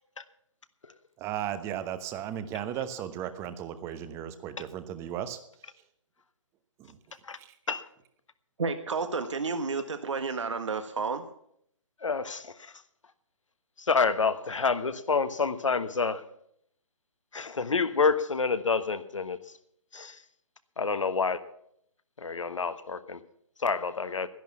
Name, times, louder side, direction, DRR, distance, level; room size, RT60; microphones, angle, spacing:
voice 1, 1.2-5.4 6.8-7.0 7.4-7.5, right 10 dB, 15° right, 0.9 m, -35 dB
voice 2, 8.6-11.2, right 4 dB, 65° right, 1.4 m, -31 dB
voice 3, 12.0-12.7 13.9-16.2 17.3-19.4 19.9-20.2 20.8-21.4 22.2-23.2 23.6-24.3, left 4 dB, 70° left, 1.2 m, -28 dB
12.0 x 11.0 x 7.1 m
figure-of-eight pair, 135°, 16 cm